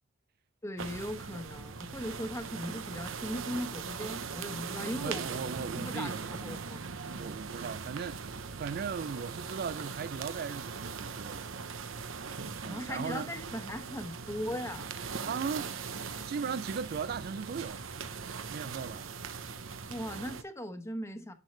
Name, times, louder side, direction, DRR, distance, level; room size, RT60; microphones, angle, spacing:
voice 1, 0.6-5.3 5.8-6.1 6.4-6.8 12.6-14.9 19.9-21.3, equal, 15° left, 1.0 m, -38 dB
sound 1, 0.8-20.4, right 5 dB, 85° right, 0.8 m, -40 dB
voice 2, 4.8-6.6 7.2-11.5 12.6-13.3 15.3-15.8 16.3-17.9 18.5-19.1, right 6 dB, 50° right, 0.4 m, -38 dB
10.5 x 6.4 x 3.2 m
head